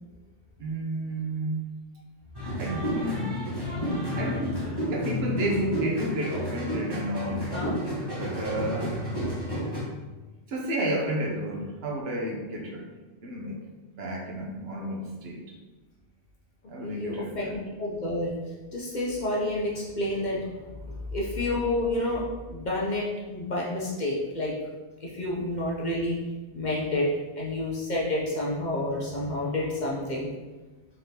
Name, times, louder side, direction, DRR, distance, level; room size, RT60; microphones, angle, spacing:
voice 1, 0.6-1.6 2.6-3.4 4.1-7.5 8.0-9.0 10.5-12.9 13.2-13.6 14.0-15.6 16.7-17.5, right 1 dB, 65° right, -1 dB, 0.9 m, -31 dB
sound 1, 2.3-9.8, equal, 20° right, 1.0 m, -31 dB
voice 2, 16.8-18.3 18.7-20.5 21.1-24.5 25.0-26.2 26.5-27.1 27.4-30.3, left 1 dB, 50° left, -4 dB, 0.6 m, -29 dB
3.8 x 3.3 x 2.8 m, 1.2 s
omnidirectional pair, 1.2 m